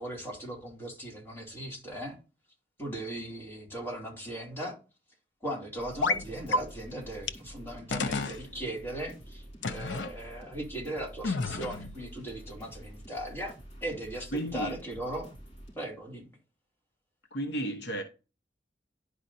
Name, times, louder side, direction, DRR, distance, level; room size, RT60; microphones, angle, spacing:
voice 1, 0.0-2.2 2.8-4.8 5.4-13.5 13.8-15.3 15.8-16.3, right 1 dB, 15° left, 2.7 m, -38 dB
sound 1, 5.8-15.7, right 1 dB, 40° left, 3.7 m, -48 dB
sound 2, 6.0-6.2 6.5-6.6 7.3-7.4 7.9-8.4 9.6-10.1 11.2-12.0, left 3 dB, 90° left, 0.6 m, -30 dB
voice 2, 14.3-14.8 17.3-18.0, right 1 dB, 70° left, 1.1 m, -33 dB
11.0 x 5.0 x 2.7 m
head